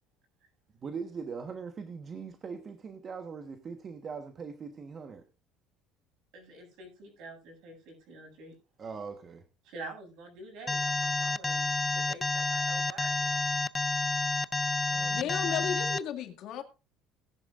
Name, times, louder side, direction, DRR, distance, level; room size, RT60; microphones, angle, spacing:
voice 1, 0.8-5.2 8.8-9.4 14.9-15.4, right 5 dB, 30° right, 7 dB, 1.2 m, -41 dB
voice 2, 6.3-8.5 9.6-13.4, right 2 dB, 65° right, 3 dB, 7.8 m, -47 dB
Alarm, 10.7-16.0, left 3 dB, 15° left, 0.5 m, -29 dB
voice 3, 15.1-16.6, left 9 dB, 55° left, 5 dB, 2.1 m, -34 dB
18.0 x 10.5 x 2.5 m, 0.30 s
cardioid pair, 145°, 0 cm